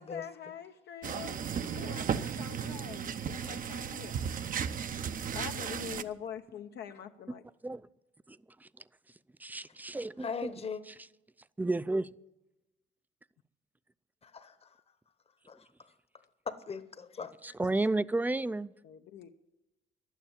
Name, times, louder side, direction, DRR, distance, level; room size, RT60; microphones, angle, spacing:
voice 1, 0.0-4.2 5.3-7.4 18.8-19.3, left 8 dB, 70° left, 0.7 m, -44 dB
sound 1, 1.0-6.0, right 7 dB, 50° right, 0.6 m, -35 dB
voice 2, 8.3-8.7 9.4-10.5 10.9-11.0 11.6-12.1 17.4-18.7, right 2 dB, 10° right, 0.4 m, -32 dB
voice 3, 10.2-10.8 14.2-14.7 15.5-15.6 16.5-17.3, left 5 dB, 35° left, 1.0 m, -39 dB
11.5 x 9.2 x 8.9 m
cardioid pair, 105°, 18 cm